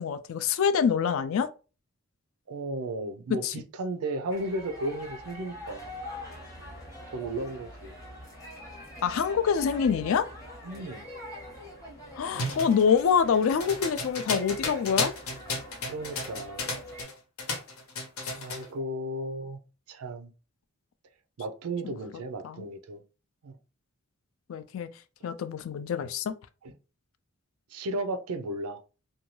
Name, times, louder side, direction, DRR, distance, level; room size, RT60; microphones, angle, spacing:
voice 1, 0.0-1.5 3.4-3.5 9.0-10.3 12.2-15.1 18.2-18.3 21.8-21.9 22.4-22.6 24.5-24.9 25.2-26.3, left 6 dB, 65° left, 0.3 m, -26 dB
voice 2, 2.5-5.9 7.1-8.0 10.6-11.1 15.9-16.8 18.4-19.6 19.9-20.3 21.4-23.0 23.4-23.6 26.6-26.7 27.7-28.8, right 1 dB, 85° right, 0.5 m, -34 dB
sound 1, 4.3-17.0, left 1 dB, 15° left, 0.7 m, -44 dB
sound 2, 12.3-17.1 17.4-18.7, left 3 dB, 85° left, 0.8 m, -33 dB
2.6 x 2.2 x 3.0 m
head